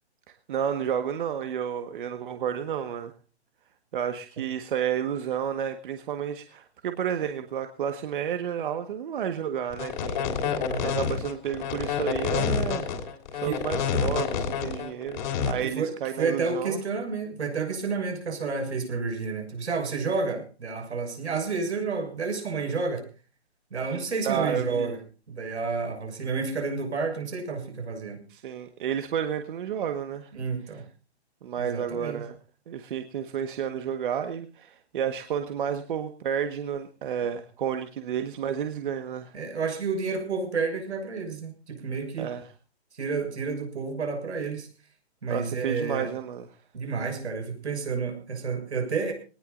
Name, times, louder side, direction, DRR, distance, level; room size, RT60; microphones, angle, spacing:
voice 1, 0.5-3.1 3.9-10.2 10.7-12.9 13.3-16.8 24.2-24.9 28.3-30.3 31.4-32.3 32.7-39.3 42.2-42.5 45.3-46.5, right 8 dB, 50° right, 7 dB, 1.5 m, -31 dB
sound 1, 9.7-15.5, left 7 dB, 45° left, 3.2 m, -28 dB
voice 2, 10.4-10.9 13.4-13.6 15.6-15.9 16.2-23.0 23.7-25.0 25.3-28.2 30.3-30.8 31.6-32.2 39.3-42.3 43.0-44.7 45.2-46.1 46.7-49.1, right 4 dB, 80° right, 5 dB, 6.7 m, -30 dB
21.0 x 19.0 x 2.6 m, 0.35 s
hypercardioid pair, 155°, 33 cm